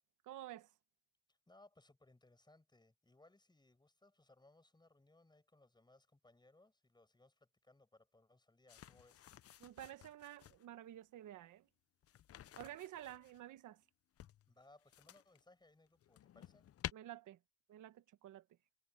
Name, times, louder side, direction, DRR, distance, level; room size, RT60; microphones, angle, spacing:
voice 1, 0.3-0.7 9.6-11.7 12.6-13.8 16.9-17.4 17.7-18.4, right 13 dB, 80° right, 1.3 m, -51 dB
voice 2, 1.3-9.3 14.5-16.7, left 2 dB, 15° left, 6.7 m, -67 dB
sound 1, 8.7-10.7 12.0-13.4 14.2-15.4 15.9-16.9, left 11 dB, 50° left, 0.6 m, -52 dB
cardioid pair, 90°, 30 cm